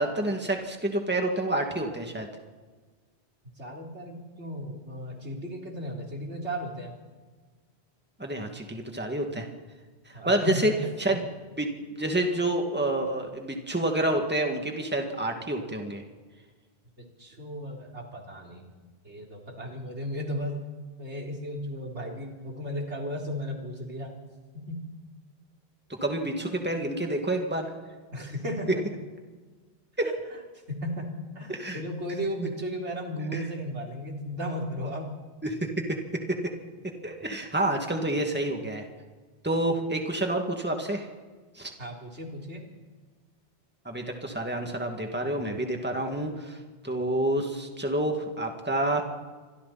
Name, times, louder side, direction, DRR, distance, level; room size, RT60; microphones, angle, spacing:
voice 1, 0.0-2.3 8.2-9.5 10.1-10.7 11.0-11.3 11.6-16.0 26.0-27.7 30.0-30.1 31.5-31.8 33.3-33.4 35.4-35.9 37.0-38.9 39.4-41.1 41.6-41.7 43.8-46.6 46.8-49.0, right 1 dB, 10° right, 3 dB, 2.3 m, -28 dB
voice 2, 3.6-7.0 10.1-10.8 17.2-18.7 19.0-20.6 21.0-24.1 24.5-24.8 28.1-28.8 30.0-30.1 30.7-31.1 31.4-35.1 37.9-38.1 41.8-42.7, equal, 85° right, 0 dB, 4.0 m, -35 dB
29.5 x 25.0 x 4.3 m, 1.4 s
omnidirectional pair, 1.1 m